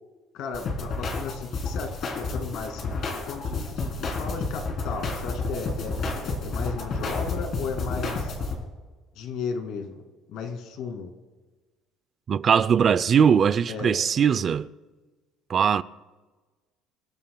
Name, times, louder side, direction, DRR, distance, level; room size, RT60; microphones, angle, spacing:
voice 1, 0.3-3.0 3.3-8.3 9.2-10.0 10.3-11.1 13.7-14.0, left 5 dB, 70° left, 2.4 m, -35 dB
sound 1, 0.5-8.5, left 3 dB, 45° left, 3.4 m, -30 dB
voice 2, 12.3-14.7 15.5-15.8, right 7 dB, 35° right, 0.4 m, -20 dB
26.5 x 13.0 x 2.3 m
cardioid pair, 135°, 0 cm